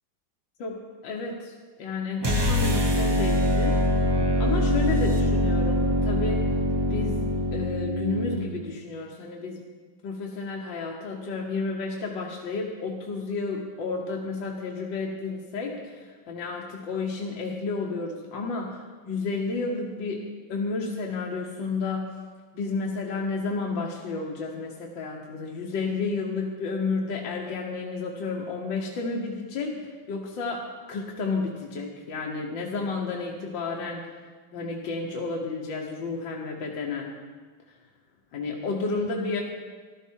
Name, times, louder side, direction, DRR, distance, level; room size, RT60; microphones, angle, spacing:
voice 1, 1.0-4.1 4.4-6.5 6.9-9.6 10.0-22.2 22.5-34.1 34.5-37.2 38.3-39.4, left 4 dB, 70° left, -1 dB, 1.8 m, -31 dB
sound 1, 2.2-8.5, left 1 dB, 35° right, 0.4 m, -23 dB
14.5 x 12.0 x 4.6 m, 1.5 s
omnidirectional pair, 2.1 m